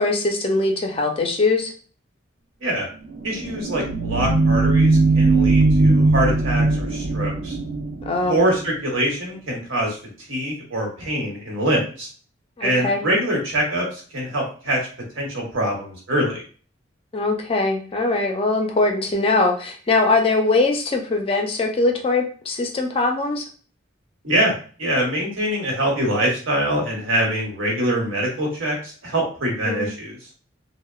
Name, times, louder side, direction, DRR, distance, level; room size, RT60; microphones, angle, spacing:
voice 1, 0.0-1.7 8.1-8.4 12.6-13.0 17.1-23.4 29.7-29.9, left 3 dB, 30° left, 3 dB, 0.4 m, -21 dB
sound 1, 3.1-8.6, right 2 dB, 65° right, 0.5 m, -19 dB
voice 2, 3.2-7.6 8.3-10.0 10.3-12.1 12.6-14.8 15.1-16.4 24.2-24.5 24.8-30.2, right 1 dB, 85° right, -1 dB, 1.0 m, -24 dB
2.8 x 2.0 x 2.3 m, 0.40 s
head